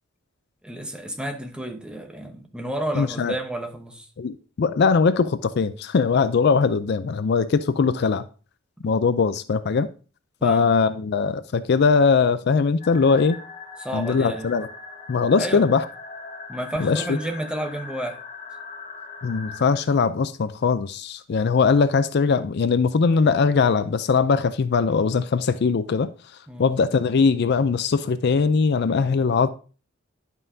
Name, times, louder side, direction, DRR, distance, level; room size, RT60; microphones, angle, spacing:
voice 1, 0.6-4.1 8.8-9.2 10.4-10.7 13.8-14.5 15.4-15.7 16.5-18.2 26.5-26.7, right 1 dB, 5° right, 0.9 m, -31 dB
voice 2, 3.0-3.3 4.2-8.3 8.8-9.9 10.4-13.4 13.9-14.7 15.1-15.8 16.8-17.2 19.2-26.1 26.6-29.5, left 5 dB, 50° left, 0.4 m, -21 dB
sound 1, 12.8-19.6, left 4 dB, 35° left, 1.3 m, -40 dB
11.0 x 5.5 x 2.7 m
head